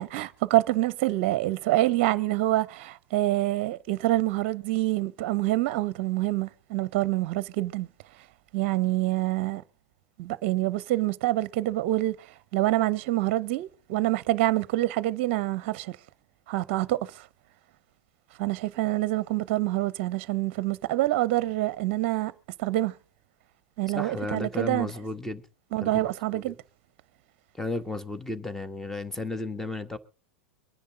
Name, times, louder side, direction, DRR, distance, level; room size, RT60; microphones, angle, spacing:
voice 1, 0.0-7.9 8.5-9.6 10.2-12.3 12.5-16.0 16.5-17.2 18.4-22.3 22.6-22.9 23.8-24.9 25.7-26.5, right 16 dB, 55° right, 0.7 m, -26 dB
voice 2, 23.9-25.4 25.8-26.5 27.6-30.0, left 2 dB, 5° left, 1.6 m, -34 dB
24.0 x 10.0 x 3.7 m
hypercardioid pair, 90°, 7 cm